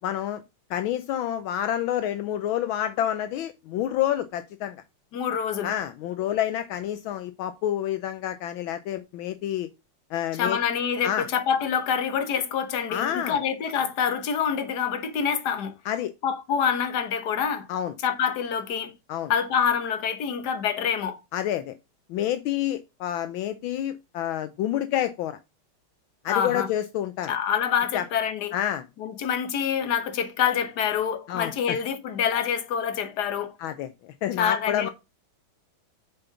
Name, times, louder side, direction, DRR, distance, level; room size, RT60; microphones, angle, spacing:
voice 1, 0.0-0.4 0.7-4.8 5.6-9.7 10.1-10.6 11.0-11.3 12.9-13.4 15.8-16.1 17.7-17.9 19.1-19.3 21.3-21.7 22.1-25.4 26.2-27.3 27.9-28.0 28.5-28.9 31.3-31.8 33.6-34.9, left 11 dB, 75° left, 1.4 m, -28 dB
voice 2, 5.1-5.7 10.3-15.7 16.2-17.7 18.0-18.9 19.3-21.2 26.3-26.7 27.3-28.5 29.0-33.6 34.4-34.9, left 7 dB, 55° left, 1.6 m, -26 dB
7.1 x 5.4 x 5.6 m
omnidirectional pair, 2.3 m